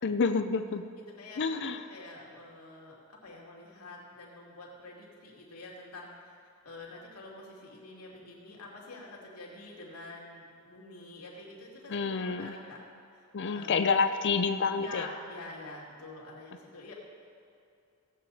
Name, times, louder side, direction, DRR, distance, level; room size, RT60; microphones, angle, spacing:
voice 1, 0.0-0.9 1.4-1.8 11.9-12.5 13.3-15.1, left 5 dB, 50° left, 8 dB, 0.5 m, -28 dB
voice 2, 0.9-6.3 6.6-12.8 13.1-13.8 14.8-16.9, left 2 dB, 85° left, -3 dB, 2.5 m, -47 dB
17.0 x 8.1 x 4.2 m, 2.5 s
head